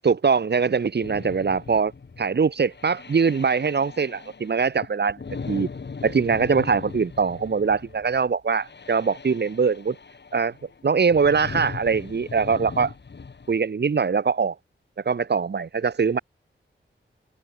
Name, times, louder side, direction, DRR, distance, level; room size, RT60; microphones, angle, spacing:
voice 1, 0.0-1.9 2.2-5.2 5.5-5.7 6.0-10.0 10.3-10.5 10.8-12.9 13.5-14.5 15.0-16.2, right 5 dB, 60° right, 1.2 m, -22 dB
sound 1, 1.0-13.6, left 5 dB, 60° left, 2.8 m, -39 dB
wide cardioid pair, 80°, 20 cm